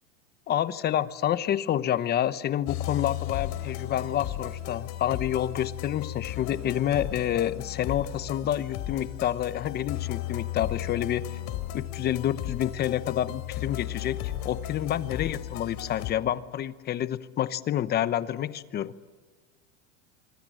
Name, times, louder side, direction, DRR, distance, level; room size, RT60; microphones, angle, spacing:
voice 1, 0.5-11.4 11.7-18.9, left 11 dB, 25° left, 15 dB, 0.9 m, -28 dB
sound 1, 2.7-16.1, left 13 dB, 45° left, 3.3 m, -35 dB
25.5 x 25.0 x 7.7 m, 1.4 s
supercardioid pair, 145°, 38 cm